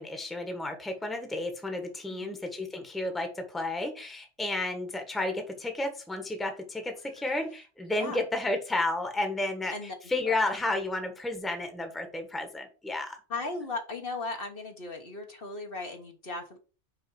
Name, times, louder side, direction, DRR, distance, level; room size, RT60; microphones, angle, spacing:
voice 1, 0.0-13.2, left 2 dB, ahead, 5 dB, 1.2 m, -32 dB
voice 2, 9.7-10.4 13.3-16.6, left 3 dB, 55° left, 3 dB, 1.3 m, -37 dB
5.6 x 5.1 x 4.7 m, 0.35 s
omnidirectional pair, 1.2 m